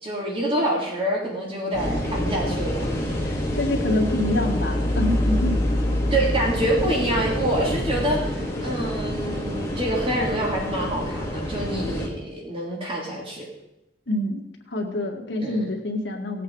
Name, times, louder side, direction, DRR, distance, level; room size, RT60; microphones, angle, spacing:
voice 1, 0.0-2.9 3.8-3.9 6.1-13.4 15.4-15.6, right 1 dB, 30° right, -3 dB, 2.8 m, -26 dB
sound 1, 1.7-12.1, left 1 dB, 15° left, 2.4 m, -26 dB
voice 2, 3.2-5.6 14.1-14.4 14.7-16.4, left 1 dB, 80° left, 2 dB, 1.9 m, -26 dB
17.5 x 8.2 x 4.8 m, 0.89 s
head